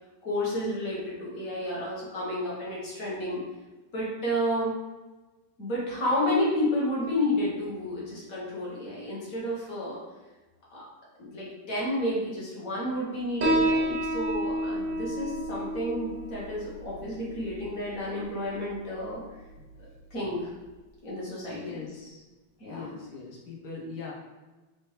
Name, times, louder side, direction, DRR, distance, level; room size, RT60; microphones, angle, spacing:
voice 1, 0.2-3.4 3.9-4.7 5.6-10.0 10.7-10.8 11.2-19.2 20.1-20.5 21.0-21.8 22.6-22.9, left 1 dB, 45° left, -6 dB, 1.7 m, -31 dB
Piano, 13.4-20.5, right 1 dB, 55° right, 0.6 m, -31 dB
voice 2, 21.5-22.2 22.7-24.1, left 4 dB, 65° left, -2 dB, 1.3 m, -41 dB
4.4 x 3.1 x 3.2 m, 1.2 s
omnidirectional pair, 2.2 m